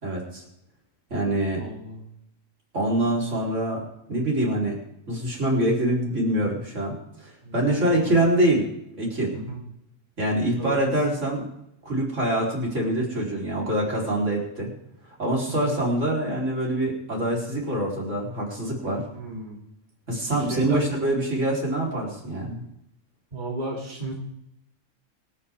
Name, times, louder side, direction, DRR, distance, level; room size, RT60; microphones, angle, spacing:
voice 1, 0.0-0.4 1.1-1.6 2.7-4.8 5.1-8.7 9.0-9.3 10.2-11.5 11.8-14.7 15.1-19.0 20.1-22.6, right 1 dB, 65° right, -3 dB, 4.2 m, -25 dB
voice 2, 1.6-2.0 7.4-8.1 9.3-9.6 10.6-10.8 15.5-15.8 19.1-19.6 20.5-20.8 23.3-24.1, right 2 dB, 35° right, -3 dB, 2.9 m, -34 dB
25.0 x 9.2 x 3.6 m, 0.81 s
omnidirectional pair, 1.3 m